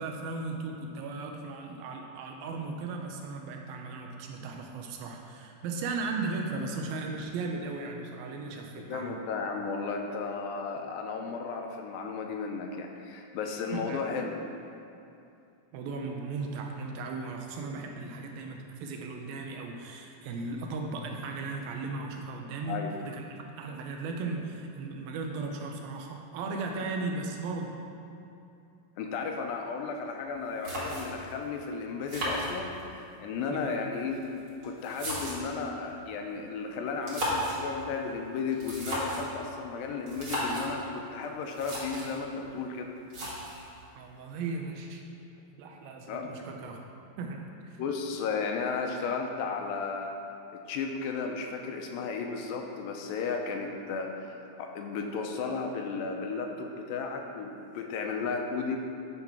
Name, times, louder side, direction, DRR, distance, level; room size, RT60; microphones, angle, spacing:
voice 1, 0.0-9.2 13.7-14.0 15.7-27.8 33.5-33.8 44.0-45.0 45.6-46.8 47.2-47.8, right 3 dB, 85° right, 2 dB, 2.5 m, -36 dB
voice 2, 8.9-14.3 22.7-22.9 29.0-34.2 34.6-42.9 46.1-46.3 47.8-50.2 50.5-58.8, left 5 dB, 85° left, 3 dB, 2.4 m, -34 dB
sound 1, 30.3-30.4 30.6-31.3 32.1-33.0 33.9-35.6 36.9-37.7 38.5-39.3 40.1-40.7 41.2-41.3 41.5-42.2 43.1-43.7, equal, 35° right, 2.0 m, -34 dB
9.7 x 4.0 x 5.9 m, 2.6 s
omnidirectional pair, 4.2 m